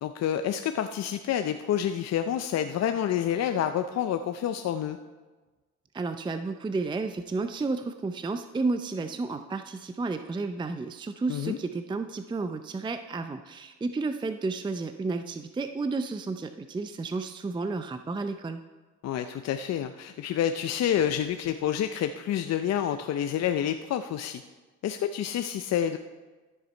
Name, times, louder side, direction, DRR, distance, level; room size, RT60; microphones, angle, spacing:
voice 1, 0.0-5.0 11.3-11.6 19.0-24.4 24.8-26.0, left 10 dB, 60° left, 8 dB, 0.5 m, -28 dB
voice 2, 5.9-18.6, right 3 dB, 15° right, 8 dB, 0.4 m, -32 dB
13.5 x 6.6 x 4.4 m, 1.3 s
cardioid pair, 90°, 30 cm